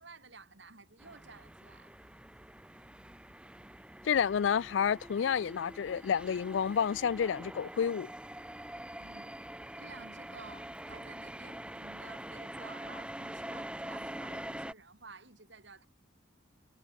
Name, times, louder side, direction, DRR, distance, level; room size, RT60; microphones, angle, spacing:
voice 1, 0.0-1.9 9.0-9.3 9.8-15.9, right 3 dB, 60° right, 3.3 m, -53 dB
sound 1, 1.0-14.7, right 1 dB, 5° right, 1.1 m, -45 dB
voice 2, 4.0-8.1, left 7 dB, 70° left, 0.4 m, -30 dB
head